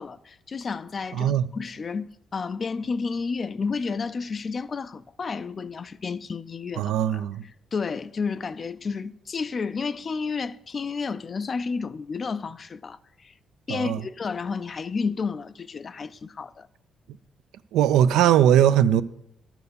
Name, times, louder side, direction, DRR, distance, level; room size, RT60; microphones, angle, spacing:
voice 1, 0.0-7.3 7.7-13.3 13.7-16.7, left 5 dB, 40° left, 0.4 m, -31 dB
voice 2, 1.1-1.5 6.8-7.4 13.7-14.0 17.7-19.0, right 10 dB, 90° right, 0.3 m, -20 dB
11.5 x 4.5 x 6.7 m
cardioid pair, 90°, 0 cm